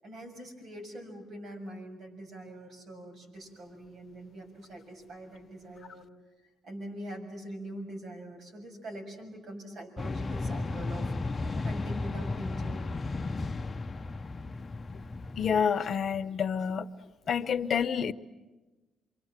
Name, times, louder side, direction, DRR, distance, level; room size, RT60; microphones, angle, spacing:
voice 1, 0.0-6.1 6.6-11.1 11.4-12.8, right 1 dB, 60° right, 4 dB, 7.2 m, -43 dB
sound 1, 10.0-15.6, left 3 dB, 30° left, 0.9 m, -34 dB
voice 2, 15.4-16.9 17.3-18.1, left 7 dB, 55° left, 12 dB, 1.0 m, -28 dB
29.0 x 24.5 x 7.6 m, 1.2 s
cardioid pair, 90°, 0 cm